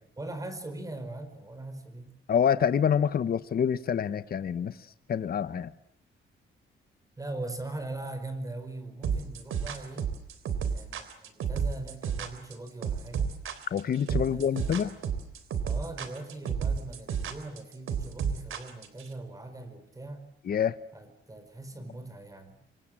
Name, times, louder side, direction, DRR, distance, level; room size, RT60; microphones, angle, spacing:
voice 1, 0.2-2.2 7.2-10.1 10.7-13.3 14.2-14.9 15.6-20.2 20.9-22.6, right 2 dB, 15° right, 4.9 m, -41 dB
voice 2, 2.3-4.7 5.1-5.7 13.7-14.9 20.5-20.7, left 8 dB, 45° left, 1.2 m, -26 dB
sound 1, 9.0-19.1, right 7 dB, 80° right, 3.6 m, -31 dB
29.0 x 25.5 x 7.7 m
wide cardioid pair, 150°, 21 cm